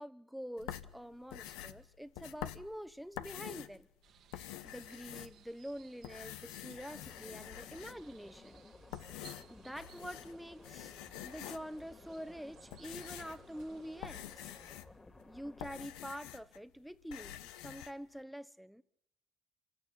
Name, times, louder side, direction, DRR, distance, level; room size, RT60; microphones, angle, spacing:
voice 1, 0.0-3.9 4.6-8.6 9.1-14.5 15.3-18.8, equal, ahead, 1.2 m, -46 dB
sound 1, 0.6-3.8 4.2-5.7 6.0-8.2 8.7-10.4 10.6-11.8 12.4-16.6 16.9-17.9, left 12 dB, 85° left, 1.0 m, -47 dB
sound 2, 4.0-14.7, right 9 dB, 70° right, 2.3 m, -63 dB
sound 3, 6.9-15.8, left 2 dB, 20° left, 2.6 m, -57 dB
27.0 x 16.5 x 8.7 m
supercardioid pair, 70°, 0 cm